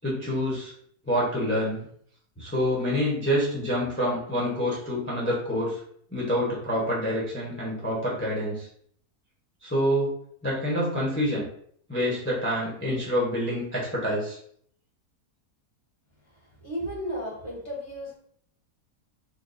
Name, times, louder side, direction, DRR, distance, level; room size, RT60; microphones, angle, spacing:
voice 1, 0.0-0.7 1.0-1.9 2.4-5.8 6.1-8.7 9.6-10.1 10.4-11.5 11.9-14.4, equal, 10° left, -5 dB, 0.6 m, -27 dB
voice 2, 16.6-18.2, equal, 25° right, -6 dB, 0.7 m, -33 dB
4.4 x 2.3 x 2.6 m, 0.63 s
omnidirectional pair, 1.7 m